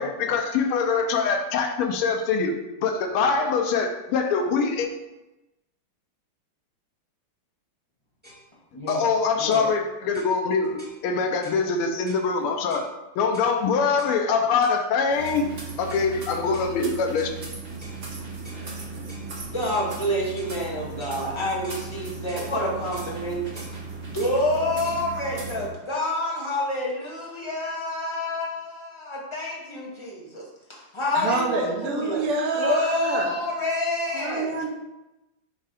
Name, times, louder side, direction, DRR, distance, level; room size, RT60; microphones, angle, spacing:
voice 1, 0.0-4.9 8.9-12.9 13.1-15.5 15.8-17.3, left 5 dB, 85° left, 5 dB, 1.6 m, -24 dB
sound 1, 8.2-8.4 8.9-9.1 9.5-9.7 10.1-10.4 10.8-11.0 11.4-11.6 12.1-12.3 12.7-12.9 13.3-13.6 14.0-14.2 14.6-14.8 15.3-15.5 15.9-16.1 16.5-16.7 17.2-17.4 17.8-18.0 18.4-18.7 19.1-19.3 19.7-19.9 20.4-20.6 21.0-21.2 21.6-21.9 22.3-22.5 22.9-23.1 23.6-23.8 24.2-24.4 24.8-25.0, left 1 dB, 5° right, 1.5 m, -47 dB
voice 2, 8.7-9.7 19.4-23.6 24.1-32.2 32.6-34.5, left 1 dB, 20° left, -4 dB, 0.9 m, -28 dB
sound 2, 15.1-25.7, right 3 dB, 45° right, 0.7 m, -37 dB
voice 3, 31.1-33.3 34.1-34.7, right 4 dB, 85° right, 1 dB, 1.8 m, -26 dB
5.8 x 3.2 x 5.1 m, 0.99 s
omnidirectional pair, 2.4 m